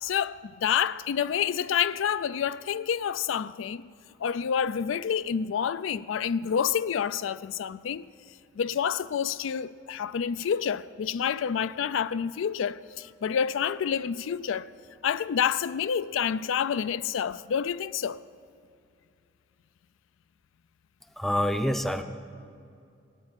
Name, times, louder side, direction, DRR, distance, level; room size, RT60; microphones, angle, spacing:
voice 1, 0.0-3.8 4.2-8.1 8.6-14.7 15.0-18.2, left 7 dB, 70° left, 0.4 m, -28 dB
voice 2, 21.2-22.0, equal, ahead, 0.6 m, -26 dB
17.0 x 8.7 x 9.7 m
head